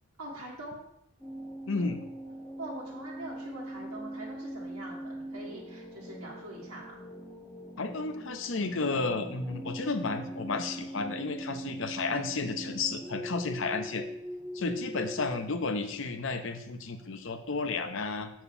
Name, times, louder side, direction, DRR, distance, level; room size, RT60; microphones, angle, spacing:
voice 1, 0.2-0.9 2.6-7.0 14.6-15.0, right 1 dB, 90° right, -5 dB, 1.8 m, -44 dB
sound 1, 1.2-15.2, equal, 5° left, 1.5 m, -41 dB
voice 2, 1.7-2.0 7.8-14.0 14.5-18.3, left 3 dB, 60° left, 7 dB, 0.7 m, -32 dB
6.8 x 4.5 x 5.5 m, 0.78 s
head